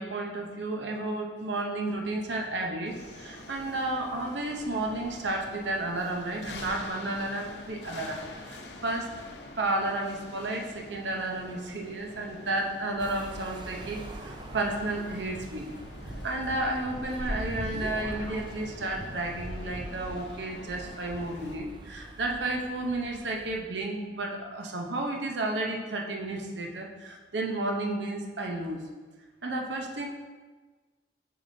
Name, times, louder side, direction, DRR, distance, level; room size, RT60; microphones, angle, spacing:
voice 1, 0.0-9.1 9.5-15.6 16.2-28.8 29.4-30.1, right 2 dB, 80° right, 1 dB, 0.8 m, -32 dB
sound 1, 2.9-21.6, left 2 dB, 70° left, 0.7 m, -46 dB
sound 2, 13.0-23.6, right 1 dB, 25° right, 0.4 m, -43 dB
sound 3, 16.6-19.2, equal, 20° left, 0.9 m, -39 dB
7.3 x 4.8 x 2.7 m, 1.4 s
head